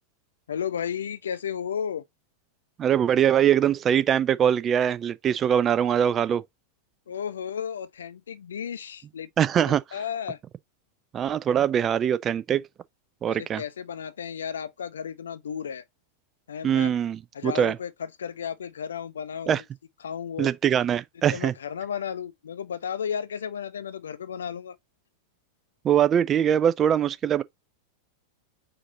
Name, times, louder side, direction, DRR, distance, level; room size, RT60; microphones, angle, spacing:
voice 1, 0.5-2.0 7.1-9.5 9.9-10.4 13.3-15.8 16.5-17.0 17.3-19.6 20.0-20.5 21.3-24.8, left 8 dB, 65° left, 0.5 m, -33 dB
voice 2, 2.8-6.4 9.4-9.8 11.1-12.6 13.2-13.6 16.6-17.7 19.5-19.6 20.4-21.5 25.8-27.4, right 9 dB, 25° right, 0.4 m, -22 dB
5.1 x 2.6 x 3.8 m
figure-of-eight pair, 90°, 0 cm